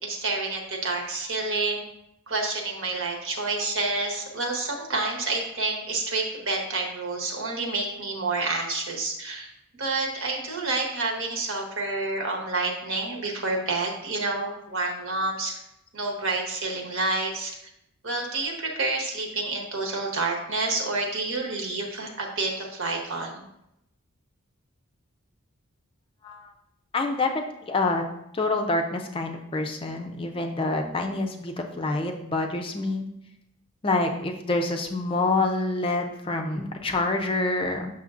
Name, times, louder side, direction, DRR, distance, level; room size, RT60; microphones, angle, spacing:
voice 1, 0.0-1.8 2.3-9.5 9.8-15.5 15.9-17.5 18.0-23.4, right 3 dB, 65° right, 1 dB, 1.2 m, -29 dB
voice 2, 26.9-27.3 27.6-28.0 28.3-33.1 33.8-37.9, left 2 dB, 25° left, 3 dB, 0.4 m, -27 dB
7.1 x 6.0 x 2.5 m, 0.81 s
head